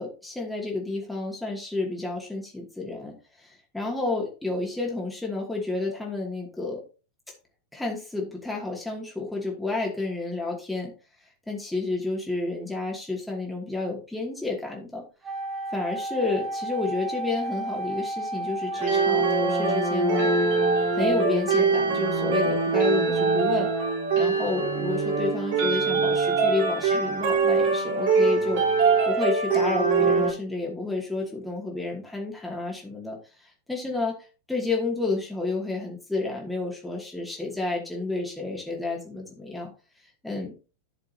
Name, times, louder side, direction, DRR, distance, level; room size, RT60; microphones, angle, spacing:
voice 1, 0.0-6.8 7.7-10.9 11.5-15.0 15.7-20.3 20.9-23.7 24.1-28.6 29.0-34.2 34.5-39.7 40.2-40.5, left 3 dB, 5° left, -2 dB, 2.5 m, -30 dB
Wind instrument woodwind instrument, 15.2-20.7, right 1 dB, 20° right, 2.5 m, -33 dB
sound 1, 18.7-30.3, right 4 dB, 55° right, 4.0 m, -23 dB
12.0 x 6.5 x 2.8 m, 0.33 s
figure-of-eight pair, 90°, 0 cm